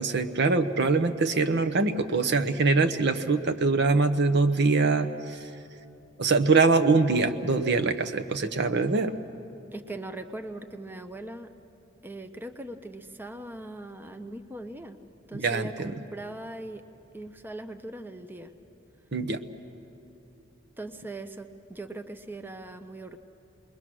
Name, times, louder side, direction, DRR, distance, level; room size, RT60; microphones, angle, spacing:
voice 1, 0.0-5.4 6.2-9.1 15.3-15.9 19.1-19.4, right 3 dB, 60° right, 8 dB, 0.9 m, -23 dB
voice 2, 9.7-11.5 12.0-15.0 15.3-16.8 17.1-18.5 20.8-23.2, right 2 dB, 10° right, 7 dB, 0.7 m, -40 dB
28.0 x 21.5 x 6.2 m, 2.7 s
head